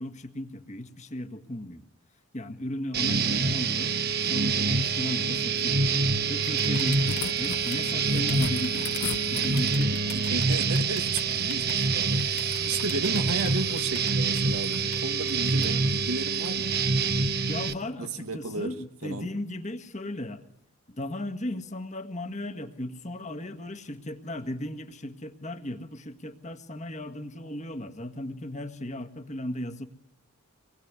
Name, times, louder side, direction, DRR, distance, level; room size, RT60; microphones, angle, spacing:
voice 1, 0.0-1.8 2.3-5.8 6.3-8.9 9.3-10.3 15.6-15.8 17.5-20.4 20.9-29.9, left 1 dB, 30° left, 1.7 m, -36 dB
sound 1, 2.9-17.7, right 4 dB, 45° right, 1.1 m, -26 dB
sound 2, 6.1-15.5, left 7 dB, 50° left, 2.7 m, -45 dB
sound 3, 6.7-10.0 11.9-12.9 13.3-13.9 14.4-14.8 15.5-15.7 16.3-16.6 17.9-18.0, left 6 dB, 70° left, 1.1 m, -40 dB
voice 2, 10.1-16.8 18.0-18.8 19.0-19.3, right 3 dB, 80° right, 1.6 m, -34 dB
26.5 x 20.5 x 9.6 m
head